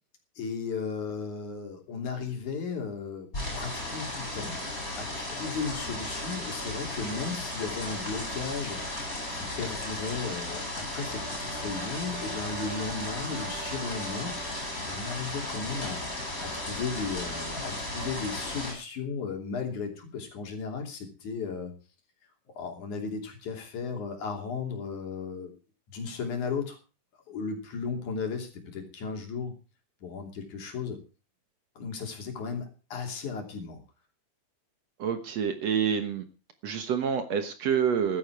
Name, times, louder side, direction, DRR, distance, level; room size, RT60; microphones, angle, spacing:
voice 1, 0.4-3.3 3.6-9.0 9.3-21.7 22.5-25.5 25.9-26.8 27.3-29.5 30.0-31.0 31.8-33.8, left 5 dB, 65° left, 3 dB, 4.3 m, -35 dB
sound 1, 3.3-18.7, left 1 dB, 25° left, 7.4 m, -35 dB
Brass instrument, 10.9-15.1, right 8 dB, 85° right, 3.6 m, -45 dB
voice 2, 35.0-36.2 36.6-38.2, right 7 dB, 60° right, 9 dB, 2.1 m, -27 dB
15.5 x 12.0 x 4.7 m, 0.33 s
omnidirectional pair, 3.8 m